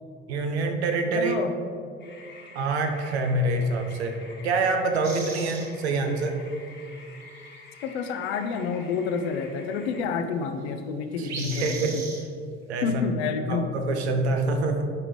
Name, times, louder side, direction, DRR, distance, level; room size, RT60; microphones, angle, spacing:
voice 1, 0.3-1.3 2.5-4.2 4.4-6.4 11.3-12.0 12.7-12.9 13.5-14.8, right 2 dB, 80° right, 5 dB, 0.8 m, -26 dB
voice 2, 1.1-1.5 7.8-12.0 12.8-13.7, left 5 dB, 75° left, 8 dB, 0.6 m, -29 dB
sound 1, 2.0-10.0, left 4 dB, 35° left, 1.3 m, -48 dB
sound 2, 5.0-5.7 6.9-7.0 7.2-7.6 7.9-8.3 11.2-12.2, right 3 dB, 55° right, 1.8 m, -37 dB
9.7 x 5.0 x 3.2 m, 2.4 s
figure-of-eight pair, 55°, 33 cm